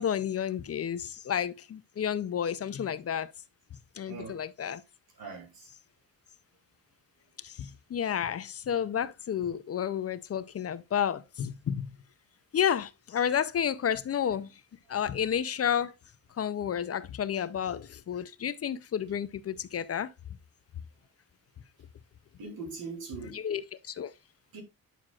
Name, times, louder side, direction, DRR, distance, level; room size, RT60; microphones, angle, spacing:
voice 1, 0.0-3.3 4.0-4.8 7.4-11.9 12.5-14.5 14.9-15.9 16.4-20.1 23.3-24.1, left 8 dB, 45° left, 0.5 m, -31 dB
voice 2, 22.4-23.4 24.5-24.6, right 4 dB, 90° right, 2.8 m, -40 dB
9.3 x 6.1 x 2.4 m
wide cardioid pair, 155°, 35 cm